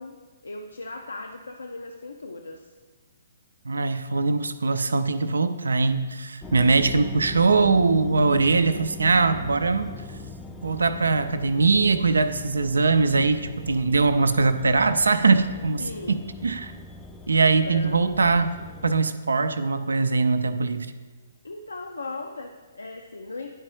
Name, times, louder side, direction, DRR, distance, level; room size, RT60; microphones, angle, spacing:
voice 1, 0.0-2.7 6.6-6.7 15.8-16.3 17.6-18.1 21.4-23.5, left 3 dB, 70° left, 4 dB, 0.4 m, -38 dB
voice 2, 3.7-9.9 10.6-15.8 16.1-16.7 17.3-18.5 18.8-20.9, right 3 dB, 70° right, 11 dB, 0.4 m, -21 dB
sound 1, 6.4-19.0, left 2 dB, 10° left, 0.4 m, -41 dB
10.5 x 4.5 x 3.0 m, 1.3 s
figure-of-eight pair, 125°, 0 cm